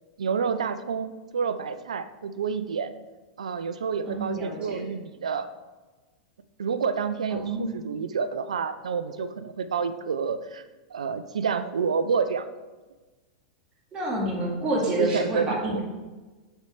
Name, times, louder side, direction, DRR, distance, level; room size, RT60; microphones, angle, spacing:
voice 1, 0.2-2.9 3.4-5.5 6.6-10.6 10.9-12.5 15.0-15.8, right 6 dB, 85° right, 12 dB, 0.4 m, -29 dB
voice 2, 4.1-4.8 7.3-7.8 13.9-15.8, right 1 dB, 30° right, -4 dB, 2.2 m, -28 dB
7.2 x 4.5 x 5.0 m, 1.3 s
hypercardioid pair, 105°, 4 cm